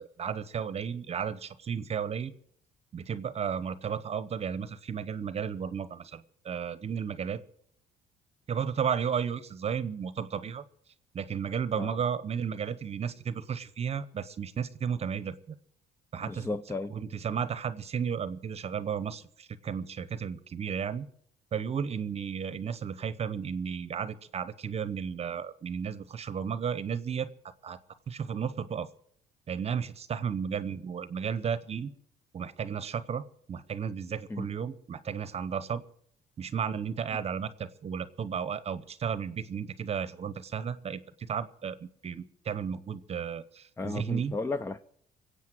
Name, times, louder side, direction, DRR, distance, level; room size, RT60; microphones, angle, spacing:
voice 1, 0.0-2.3 2.9-7.4 8.5-10.6 11.1-15.6 16.1-16.5 16.9-21.1 21.5-27.3 27.6-27.8 28.1-28.9 29.5-31.9 32.3-33.2 33.5-35.8 36.4-44.4, right 7 dB, 40° right, 0.9 m, -33 dB
voice 2, 16.2-17.0 34.3-34.5 43.8-44.8, left 3 dB, 15° left, 0.6 m, -34 dB
22.5 x 8.3 x 7.8 m
cardioid pair, 110°, 17 cm